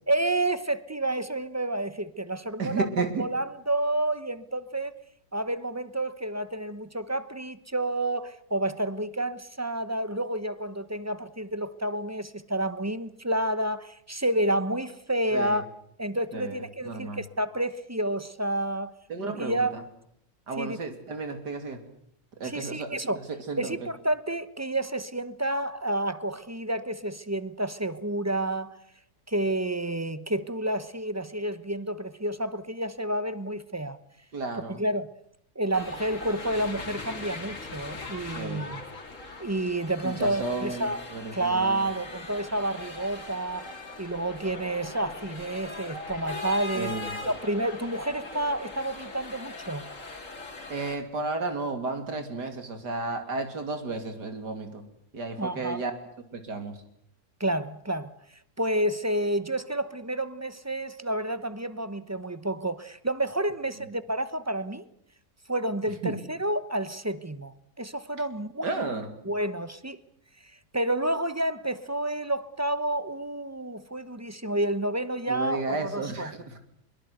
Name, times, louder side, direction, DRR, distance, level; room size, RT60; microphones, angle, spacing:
voice 1, 0.1-2.9 3.2-4.9 5.3-15.7 16.0-18.9 19.2-19.7 20.6-20.8 22.4-23.2 23.6-28.7 29.3-34.0 34.5-35.1 35.5-38.8 39.4-41.0 41.3-43.7 44.0-47.0 47.2-49.9 55.4-55.8 57.4-58.1 58.6-64.9 65.5-68.9 69.2-70.0 70.7-76.3, right 1 dB, 15° right, 0.8 m, -30 dB
voice 2, 2.6-3.2 15.3-15.6 16.3-16.6 16.9-17.2 19.1-19.8 20.5-21.8 22.4-23.0 23.3-23.8 34.3-34.8 38.4-38.7 40.0-41.7 46.8-47.1 50.7-54.8 55.1-55.9 56.3-56.7 66.0-66.1 68.6-69.1 75.3-76.6, right 3 dB, 85° right, 3.5 m, -33 dB
sound 1, 35.7-51.0, left 3 dB, 50° left, 3.2 m, -40 dB
23.5 x 22.0 x 8.0 m
omnidirectional pair, 1.7 m